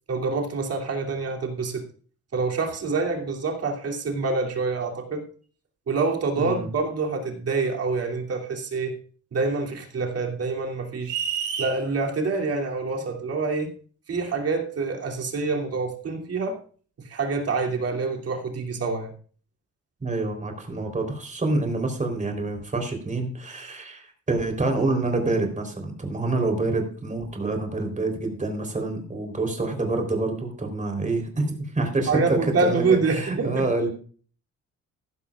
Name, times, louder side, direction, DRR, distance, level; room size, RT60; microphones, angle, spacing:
voice 1, 0.1-1.9 2.3-5.2 5.9-9.0 9.3-11.1 11.6-13.7 14.1-16.6 17.0-19.1 32.1-33.7, right 4 dB, 55° right, 2.9 m, -26 dB
voice 2, 6.4-6.7 20.0-33.9, right 2 dB, 25° right, 3.7 m, -27 dB
sound 1, 11.0-11.8, right 7 dB, 90° right, 2.7 m, -28 dB
15.0 x 12.5 x 2.4 m
cardioid pair, 90°, 30 cm